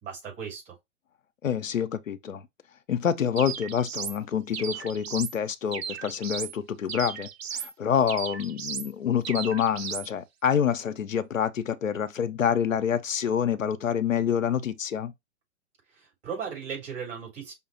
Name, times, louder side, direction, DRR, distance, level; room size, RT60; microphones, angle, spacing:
voice 1, 0.0-0.8 15.9-17.5, right 6 dB, 30° right, 3.2 m, -37 dB
voice 2, 1.4-2.4 2.9-15.1, left 8 dB, 85° left, 0.7 m, -27 dB
sound 1, 3.4-4.2 4.5-5.4 5.7-6.5 6.9-7.7 8.1-8.9 9.2-10.1, right 7 dB, 55° right, 0.7 m, -36 dB
5.6 x 2.0 x 4.2 m
hypercardioid pair, 130°, 39 cm